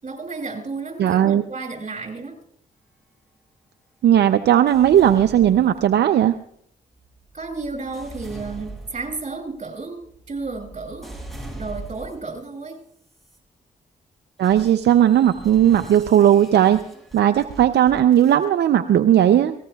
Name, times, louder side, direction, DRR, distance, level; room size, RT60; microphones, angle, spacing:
voice 1, 0.0-2.3 7.3-11.1 11.5-12.8, right 3 dB, 40° right, 2 dB, 6.6 m, -32 dB
voice 2, 1.0-1.4 4.0-6.4 14.4-16.8 17.1-19.5, right 10 dB, 75° right, 9 dB, 0.5 m, -16 dB
sound 1, 4.7-6.2 6.9-12.4 13.0-13.4 14.4-18.5, right 2 dB, ahead, 6.9 m, -41 dB
24.5 x 18.5 x 2.3 m, 0.69 s
cardioid pair, 55°, 18 cm